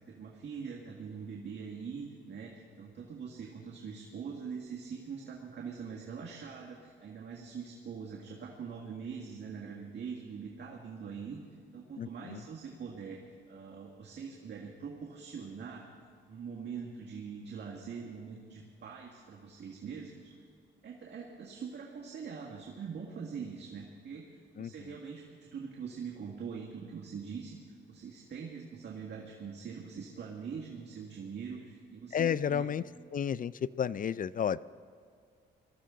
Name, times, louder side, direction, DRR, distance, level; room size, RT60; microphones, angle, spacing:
voice 1, 0.0-11.4 11.7-13.2 13.5-15.9 16.3-20.3 20.8-27.6 27.9-32.7 33.1-33.2, right 6 dB, 55° right, -1 dB, 1.8 m, -43 dB
voice 2, 12.0-12.4 24.6-24.9 32.1-32.8 33.1-34.6, left 8 dB, 45° left, 19 dB, 0.4 m, -32 dB
20.5 x 13.5 x 3.8 m, 2.3 s
cardioid pair, 70°, 21 cm